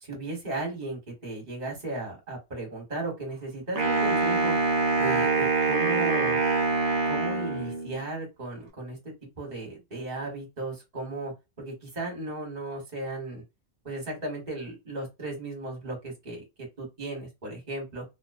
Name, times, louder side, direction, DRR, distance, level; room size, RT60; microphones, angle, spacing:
voice 1, 0.0-4.6 5.0-6.4 7.0-13.4 13.8-16.4 16.8-18.0, right 2 dB, 35° right, 1 dB, 1.1 m, -35 dB
Wind instrument woodwind instrument, 3.8-8.0, right 3 dB, 90° right, 1.2 m, -25 dB
2.6 x 2.1 x 2.4 m, 0.23 s
omnidirectional pair, 1.4 m